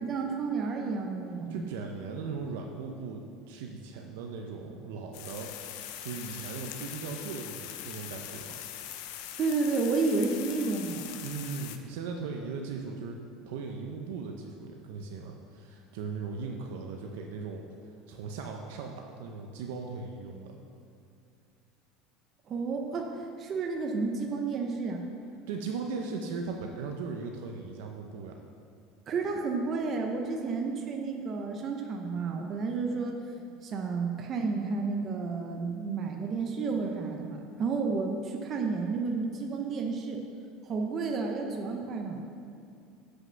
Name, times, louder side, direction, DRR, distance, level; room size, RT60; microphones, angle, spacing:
voice 1, 0.0-1.6 9.4-11.1 22.5-25.0 29.1-33.2 33.6-40.2 40.6-42.2, right 4 dB, 25° right, 2 dB, 0.6 m, -31 dB
voice 2, 1.5-5.5 6.0-8.6 11.2-13.2 13.5-17.6 18.1-20.6 25.5-28.4, right 4 dB, 80° right, 2 dB, 0.7 m, -38 dB
sound 1, 5.1-11.8, left 11 dB, 60° left, 0.6 m, -42 dB
7.5 x 6.4 x 5.8 m, 2.5 s
cardioid pair, 175°, 0 cm